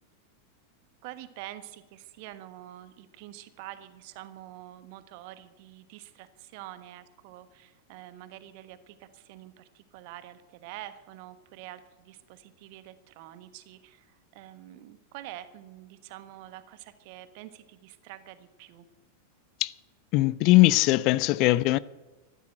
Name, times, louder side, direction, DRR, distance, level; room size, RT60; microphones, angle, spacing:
voice 1, 1.0-18.8, right 14 dB, 45° right, 1.3 m, -46 dB
voice 2, 20.1-21.8, left 19 dB, 40° left, 0.4 m, -20 dB
14.5 x 12.0 x 7.8 m
figure-of-eight pair, 90°, 0 cm